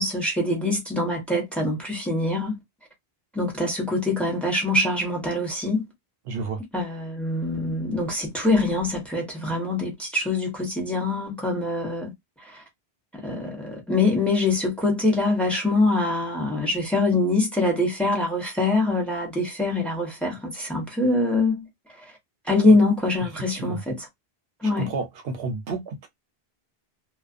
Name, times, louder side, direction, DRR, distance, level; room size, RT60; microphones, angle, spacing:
voice 1, 0.0-2.6 3.3-5.8 6.7-12.1 12.4-12.6 13.1-21.6 22.4-24.1 24.6-24.9, left 2 dB, ahead, 0.9 m, -24 dB
voice 2, 6.3-6.6 23.5-23.8 24.8-26.1, right 4 dB, 75° right, 0.8 m, -31 dB
2.4 x 2.2 x 2.4 m
omnidirectional pair, 1.0 m